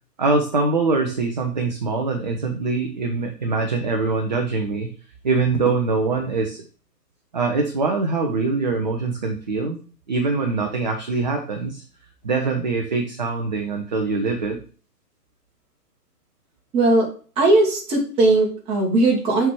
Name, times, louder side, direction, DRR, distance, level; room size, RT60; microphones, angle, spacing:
voice 1, 0.2-4.9 5.2-6.6 7.3-9.8 10.1-11.8 12.2-14.6, right 3 dB, 30° right, 3 dB, 0.5 m, -23 dB
voice 2, 16.7-17.1 17.4-19.5, right 2 dB, 10° right, -2 dB, 1.4 m, -18 dB
5.7 x 4.4 x 4.6 m, 0.39 s
figure-of-eight pair, 130°, 49 cm